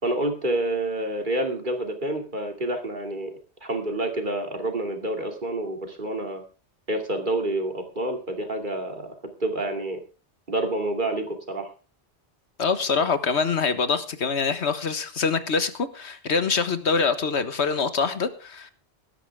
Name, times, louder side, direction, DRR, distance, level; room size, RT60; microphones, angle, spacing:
voice 1, 0.0-3.3 3.6-6.4 6.9-9.1 9.4-10.0 10.5-11.7, right 1 dB, 45° right, 4 dB, 2.7 m, -28 dB
voice 2, 12.6-18.7, left 5 dB, 80° left, 11 dB, 1.6 m, -25 dB
17.0 x 13.0 x 3.5 m, 0.33 s
omnidirectional pair, 1.1 m